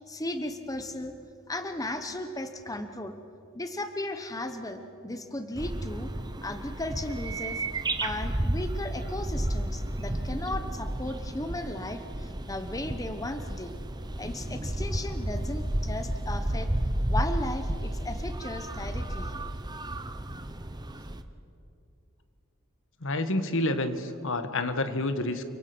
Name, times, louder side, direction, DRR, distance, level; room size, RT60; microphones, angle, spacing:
voice 1, 0.1-1.1 1.5-3.1 3.5-6.1 6.4-7.6 8.0-13.7 14.2-16.7 17.1-19.4, left 1 dB, 15° left, 8 dB, 1.1 m, -36 dB
sound 1, 5.5-21.2, right 1 dB, 20° right, 1.0 m, -32 dB
voice 2, 23.0-25.4, left 2 dB, 60° left, 9 dB, 1.6 m, -28 dB
29.5 x 25.0 x 6.2 m, 2.7 s
head